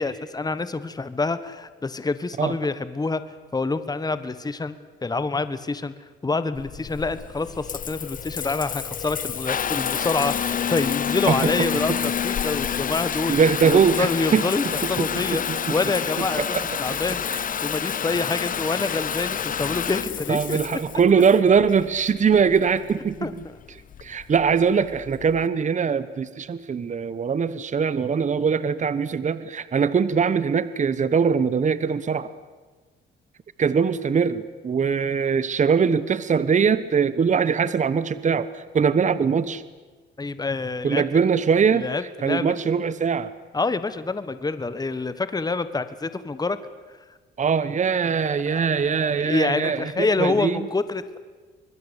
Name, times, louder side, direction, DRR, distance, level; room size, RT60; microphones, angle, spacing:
voice 1, 0.0-3.2 3.5-4.7 5.0-5.9 6.2-13.3 13.6-15.4 15.7-20.8 23.2-23.3 40.2-41.3 41.7-42.5 43.5-46.6 48.8-51.2, left 3 dB, 20° left, 13 dB, 1.4 m, -27 dB
Water tap faucet / Bathtub (filling or washing) / Trickle dribble, 6.5-25.4, left 8 dB, 45° left, 0.8 m, -29 dB
sound 1, 10.0-20.3, left 7 dB, 85° left, 3.6 m, -46 dB
voice 2, 13.3-14.5 15.0-15.7 16.4-16.6 20.3-23.3 24.0-32.3 33.6-39.6 40.8-41.9 42.2-43.3 47.4-50.7, right 6 dB, 40° right, 15 dB, 1.1 m, -22 dB
25.0 x 21.5 x 8.3 m, 1.4 s
cardioid pair, 90°, 20 cm